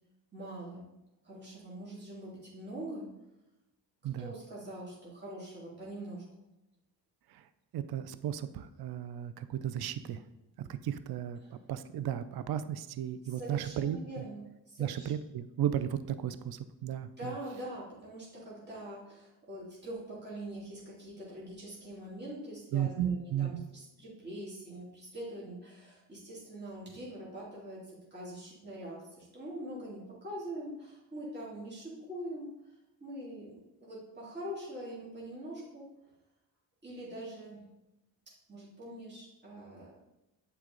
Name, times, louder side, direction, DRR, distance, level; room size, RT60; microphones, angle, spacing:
voice 1, 0.3-0.9 1.2-3.1 4.2-6.2 11.4-11.6 13.2-15.1 17.2-32.7 33.0-35.9 36.8-37.6 38.5-39.9, right 1 dB, 20° right, -7 dB, 2.7 m, -43 dB
voice 2, 7.7-10.2 10.6-14.2 14.8-17.3 22.7-23.7, right 10 dB, 55° right, 13 dB, 0.6 m, -35 dB
7.9 x 4.8 x 3.9 m, 0.92 s
cardioid pair, 70°, 45 cm